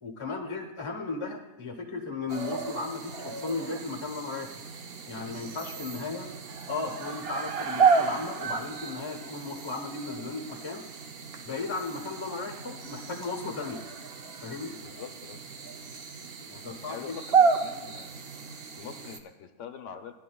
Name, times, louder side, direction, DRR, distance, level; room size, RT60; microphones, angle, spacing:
voice 1, 0.0-4.5 5.1-6.3 6.7-10.8 11.4-13.8 14.4-14.8 16.4-17.1, left 3 dB, 25° left, 2 dB, 0.9 m, -35 dB
sound 1, 2.3-19.2, right 5 dB, 55° right, 0.7 m, -31 dB
voice 2, 14.8-15.4 16.9-18.2 18.8-20.1, left 7 dB, 60° left, 7 dB, 0.9 m, -43 dB
16.5 x 10.5 x 2.3 m, 1.0 s
omnidirectional pair, 1.7 m